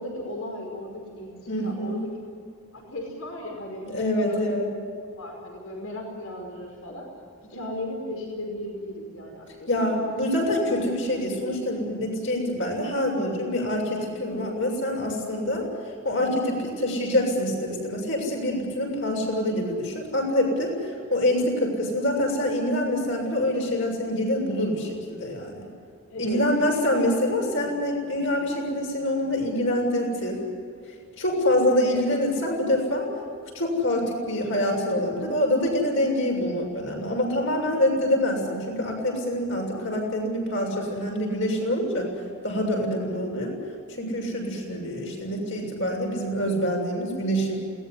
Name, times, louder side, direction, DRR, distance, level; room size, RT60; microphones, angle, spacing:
voice 1, 0.0-2.1 2.7-4.4 5.2-7.1 7.4-10.1 26.1-26.4 31.7-32.0, left 1 dB, 80° left, 1 dB, 5.2 m, -36 dB
voice 2, 1.5-2.0 3.9-4.7 9.7-15.7 16.0-20.7 21.1-25.6 26.2-30.4 31.2-33.1 33.5-42.1 42.4-43.5 44.0-47.6, left 1 dB, 60° left, 1 dB, 7.1 m, -25 dB
21.5 x 19.0 x 10.0 m, 2.4 s
head